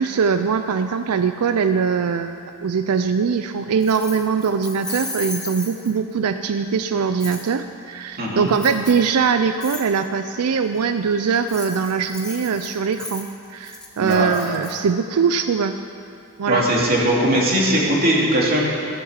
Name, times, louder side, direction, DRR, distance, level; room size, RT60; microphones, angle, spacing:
voice 1, 0.0-15.7 16.4-16.7, right 6 dB, 90° right, 9 dB, 0.5 m, -22 dB
Keys jangling, 3.8-6.1 7.2-7.4 8.5-9.1 9.6-9.8 11.3-14.7, left 2 dB, 5° left, 1.6 m, -34 dB
voice 2, 8.2-8.5 14.0-14.3 16.5-18.6, right 1 dB, 45° right, -4 dB, 2.7 m, -19 dB
14.0 x 8.8 x 7.3 m, 2.5 s
head